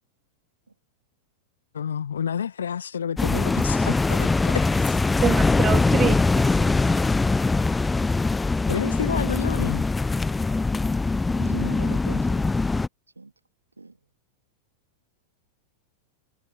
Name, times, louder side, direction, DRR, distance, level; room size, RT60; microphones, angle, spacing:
voice 1, 1.7-5.0 8.7-9.9, left 8 dB, 70° left, 1.6 m, -30 dB
sound 1, 3.2-12.9, left 3 dB, 10° left, 0.9 m, -22 dB
voice 2, 5.2-7.3, right 9 dB, 25° right, 2.6 m, -28 dB
voice 3, 11.4-12.7 13.2-13.3 13.8-14.0, right 3 dB, 80° right, 3.5 m, -38 dB
figure-of-eight pair, 90°, 0 cm